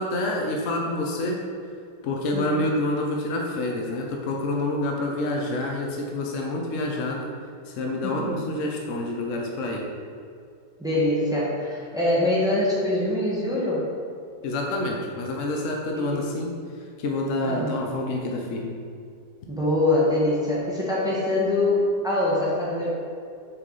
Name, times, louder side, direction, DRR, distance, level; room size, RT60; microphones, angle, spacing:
voice 1, 0.0-1.4 2.0-7.3 7.7-9.9 14.4-16.5 17.0-18.7, left 2 dB, 65° left, 0 dB, 0.7 m, -27 dB
voice 2, 2.3-2.6 8.0-8.3 10.8-13.9 15.9-16.3 17.4-17.8 19.5-22.9, left 1 dB, 5° right, -7 dB, 0.9 m, -24 dB
6.1 x 4.6 x 3.9 m, 2.4 s
omnidirectional pair, 2.1 m